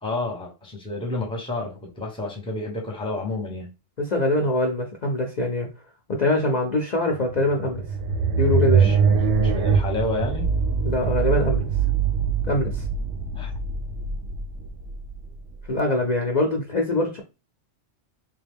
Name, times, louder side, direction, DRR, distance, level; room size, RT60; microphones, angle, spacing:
voice 1, 0.0-3.7 8.6-10.5 13.3-13.5, left 2 dB, 5° left, 0.7 m, -30 dB
voice 2, 4.0-5.7 6.1-7.8 8.4-8.9 10.8-11.7 12.5-12.8 15.7-17.2, left 1 dB, 45° left, 0.6 m, -23 dB
sound 1, 7.3-15.7, right 5 dB, 80° right, 0.9 m, -23 dB
3.5 x 2.3 x 3.5 m
omnidirectional pair, 1.2 m